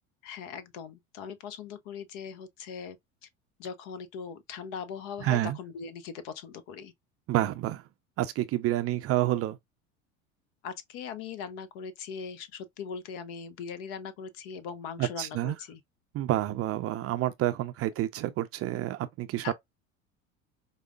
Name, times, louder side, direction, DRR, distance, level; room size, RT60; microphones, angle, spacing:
voice 1, 0.2-3.0 3.6-6.9 10.6-15.8 19.4-19.5, left 6 dB, 60° left, 0.8 m, -40 dB
voice 2, 5.2-5.6 7.3-7.8 8.2-9.6 15.0-15.6 16.1-19.5, right 14 dB, 35° right, 0.4 m, -29 dB
4.8 x 2.0 x 2.4 m
hypercardioid pair, 75°, 41 cm